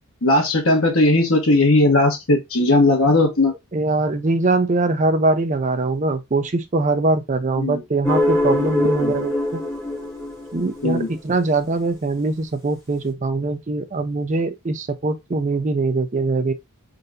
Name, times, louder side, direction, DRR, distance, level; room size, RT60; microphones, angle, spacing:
voice 1, 0.2-3.5 7.6-7.8 9.0-9.1 10.8-11.1, left 2 dB, 65° left, 1.4 m, -17 dB
voice 2, 3.7-9.6 10.5-16.5, right 3 dB, 35° right, 0.5 m, -22 dB
sound 1, 8.0-11.4, left 1 dB, 15° left, 1.7 m, -23 dB
3.9 x 3.9 x 2.5 m
head